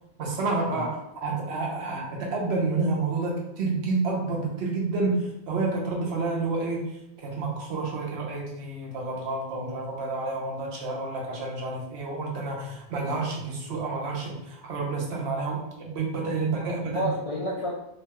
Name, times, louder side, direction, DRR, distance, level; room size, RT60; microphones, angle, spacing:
voice 1, 0.2-6.9 7.2-17.1, right 3 dB, 80° right, -2 dB, 1.0 m, -29 dB
voice 2, 16.3-17.7, equal, 60° left, -4 dB, 0.4 m, -32 dB
2.9 x 2.2 x 2.8 m, 0.84 s
omnidirectional pair, 1.1 m